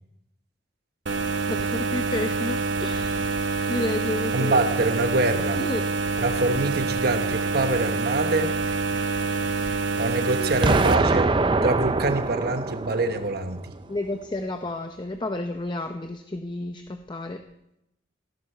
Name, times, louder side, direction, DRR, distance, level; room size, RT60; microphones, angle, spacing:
sound 1, 1.1-11.0, right 4 dB, 75° right, 0.9 m, -26 dB
voice 1, 1.5-3.3 3.7-4.6 5.5-5.9 13.9-17.4, left 1 dB, 25° left, 5 dB, 0.6 m, -31 dB
voice 2, 4.3-5.6 6.2-8.5 10.0-11.3 11.6-13.6, right 2 dB, 55° right, 7 dB, 1.1 m, -25 dB
Explosion, 10.6-13.6, right 3 dB, 25° right, 0.5 m, -23 dB
16.5 x 11.5 x 4.4 m, 0.85 s
head